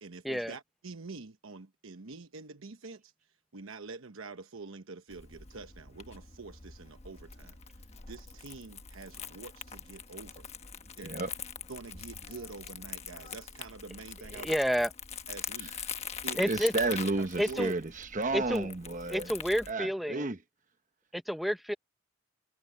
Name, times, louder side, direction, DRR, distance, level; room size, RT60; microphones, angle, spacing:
voice 1, 0.0-3.1 3.5-7.6 8.1-10.5 11.0-11.3 11.7-14.6 15.3-15.8 16.2-16.4 17.2-17.7, right 3 dB, 80° right, 1.0 m, -46 dB
Crumpling crinkling, 5.1-19.7, left 7 dB, 30° left, 1.3 m, -43 dB
voice 2, 14.3-14.9 16.4-16.7 17.4-17.7 18.3-18.7 19.1-20.3 21.1-21.7, equal, ahead, 0.8 m, -30 dB
voice 3, 16.3-19.3 19.7-20.4, right 3 dB, 40° right, 1.1 m, -32 dB
head